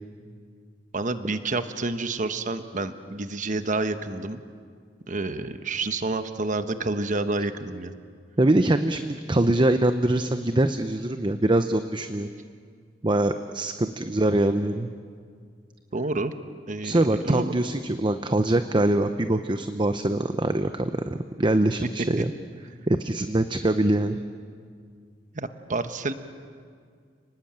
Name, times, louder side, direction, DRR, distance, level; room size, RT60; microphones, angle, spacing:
voice 1, 0.9-4.4 5.1-7.9 15.9-16.3 16.7-17.5 25.3-26.1, right 2 dB, 45° right, 9 dB, 1.2 m, -29 dB
voice 2, 8.4-12.3 13.0-14.9 16.8-22.3 22.9-24.2, right 1 dB, 25° right, 9 dB, 0.7 m, -23 dB
29.5 x 19.5 x 8.8 m, 2.1 s
head